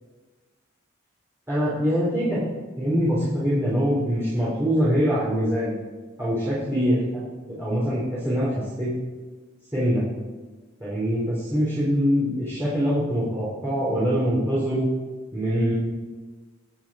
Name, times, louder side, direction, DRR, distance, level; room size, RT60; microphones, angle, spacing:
voice 1, 1.5-2.4 2.8-5.8 6.2-7.2 7.6-8.5 8.8-8.9 9.7-10.0 10.8-14.9 15.3-15.7, equal, 10° right, -10 dB, 3.8 m, -23 dB
23.5 x 8.9 x 4.4 m, 1.3 s
head